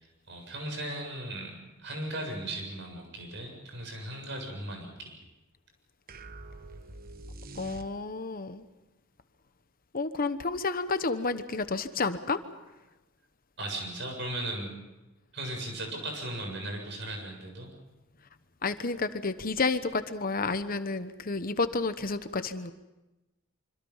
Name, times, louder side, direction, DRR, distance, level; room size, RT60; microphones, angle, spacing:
voice 1, 0.3-5.2 13.6-14.7 15.3-17.7, right 1 dB, 65° right, 3 dB, 7.6 m, -37 dB
sound 1, 6.1-8.4, right 2 dB, 50° right, 1.1 m, -45 dB
voice 2, 7.5-8.6 9.9-12.4 18.6-22.7, left 3 dB, 45° left, 11 dB, 1.1 m, -30 dB
26.0 x 25.5 x 5.7 m, 1.0 s
head